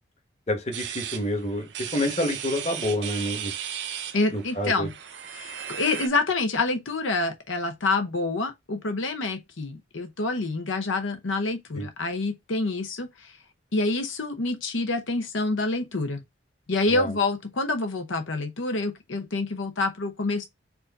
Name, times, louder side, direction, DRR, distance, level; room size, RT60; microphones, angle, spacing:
voice 1, 0.5-3.5 4.3-4.9 11.7-11.9 16.9-17.1, left 1 dB, 35° left, 1.2 m, -28 dB
sound 1, 0.7-6.1, right 9 dB, 60° right, 0.6 m, -36 dB
voice 2, 4.1-4.9 5.3-13.4 13.7-16.2 16.7-20.5, left 3 dB, 80° left, 0.8 m, -27 dB
4.6 x 2.6 x 4.0 m
head